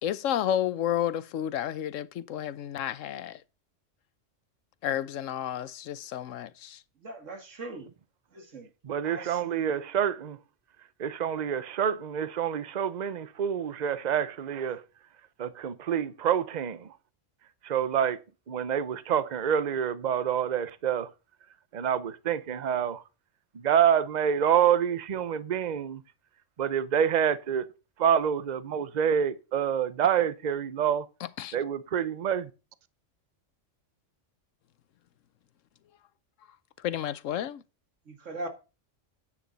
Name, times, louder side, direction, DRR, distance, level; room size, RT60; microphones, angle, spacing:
voice 1, 0.0-3.4 4.8-6.8 31.4-31.5 36.8-37.6, left 10 dB, 85° left, 1.1 m, -31 dB
voice 2, 7.0-7.9 8.3-8.7 9.0-9.6 38.1-38.5, right 2 dB, 75° right, 2.3 m, -40 dB
voice 3, 8.8-10.4 11.0-14.8 15.4-17.0 17.6-18.2 18.5-21.1 21.7-23.0 23.5-26.0 26.6-27.7 28.0-31.1 31.5-32.5, right 8 dB, 40° right, 0.8 m, -27 dB
9.7 x 8.6 x 4.0 m
omnidirectional pair, 1.3 m